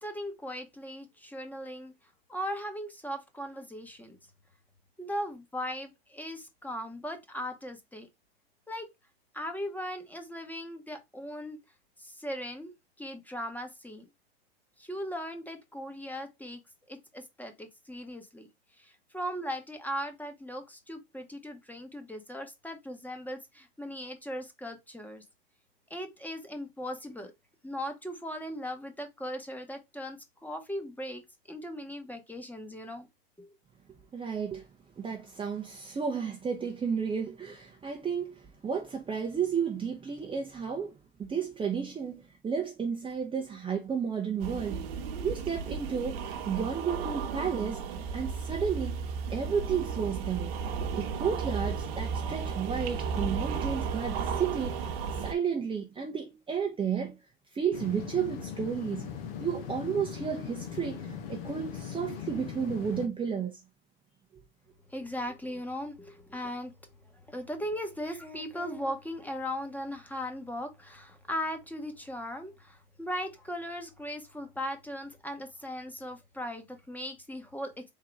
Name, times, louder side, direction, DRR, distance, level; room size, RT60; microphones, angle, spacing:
voice 1, 0.0-1.9 2.3-4.2 5.0-8.1 8.7-8.9 9.3-11.6 12.0-12.7 13.0-14.0 14.8-16.6 16.9-18.5 18.8-25.2 25.9-27.3 27.6-31.2 31.5-33.1 33.4-33.5 64.9-66.7 67.0-77.9, equal, 5° left, 1.1 m, -38 dB
voice 2, 34.1-34.6 35.0-40.9 41.2-44.9 45.2-47.8 48.1-48.9 49.3-50.5 50.9-54.9 55.2-57.2 57.5-59.1 59.4-63.6, right 6 dB, 15° right, 0.7 m, -32 dB
sound 1, 44.4-55.3, right 6 dB, 65° right, 1.0 m, -34 dB
sound 2, 57.7-63.1, left 8 dB, 65° left, 1.1 m, -40 dB
3.8 x 2.8 x 4.7 m
hypercardioid pair, 95°, 31 cm